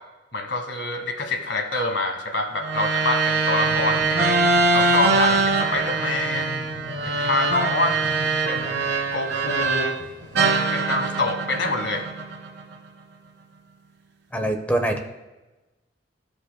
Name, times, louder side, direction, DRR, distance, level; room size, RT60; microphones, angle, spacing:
voice 1, 0.3-4.3 4.7-6.6 7.0-7.9 8.5-9.9 10.7-12.0, left 2 dB, 85° left, 5 dB, 1.3 m, -26 dB
sound 1, 2.6-10.0 10.4-12.7, right 3 dB, 90° right, 1.5 m, -23 dB
sound 2, 3.6-10.4, equal, 50° right, 1.7 m, -39 dB
voice 2, 14.3-15.0, right 1 dB, 10° left, 5 dB, 0.8 m, -23 dB
14.5 x 5.3 x 2.2 m, 1.1 s
head